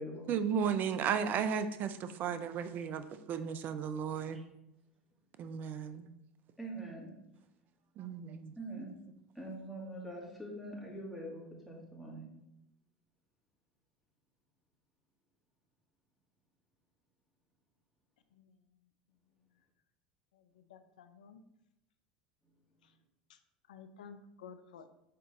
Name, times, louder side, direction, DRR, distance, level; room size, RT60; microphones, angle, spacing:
voice 1, 0.3-4.4 5.4-6.1 8.0-8.6, right 7 dB, 45° right, 0.6 m, -34 dB
voice 2, 6.6-7.1 8.6-8.9 9.3-12.3, right 1 dB, ahead, 2.4 m, -44 dB
voice 3, 20.3-21.4 23.3-23.4 23.7-24.9, left 6 dB, 80° left, 0.5 m, -53 dB
6.7 x 4.0 x 3.8 m
hypercardioid pair, 85°, 4 cm